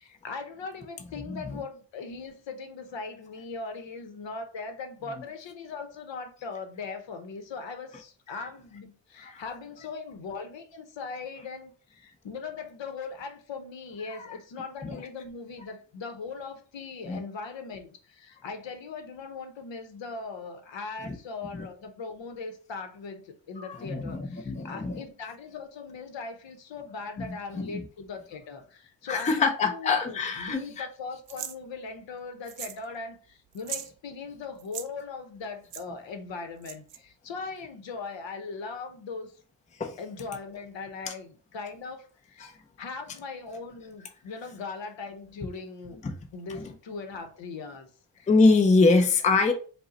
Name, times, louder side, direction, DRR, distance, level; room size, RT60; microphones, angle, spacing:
voice 1, 0.0-39.3 40.0-46.0 46.3-47.9 48.1-48.3, left 4 dB, 70° left, 0.8 m, -39 dB
voice 2, 1.3-1.6 9.2-9.4 14.8-15.0 17.1-17.2 21.0-21.2 23.6-25.0 27.2-27.3 27.6-27.8 29.1-30.9 39.8-40.0 42.4-42.5 46.0-46.2 46.5-46.7 48.3-49.5, left 3 dB, 15° left, 0.4 m, -24 dB
sound 1, 31.3-31.6 32.5-32.8 33.1-33.2 33.5-33.9 34.6-34.9 35.7-35.8 36.6-37.0, right 10 dB, 65° right, 0.5 m, -38 dB
5.2 x 2.1 x 3.9 m
wide cardioid pair, 150°, 46 cm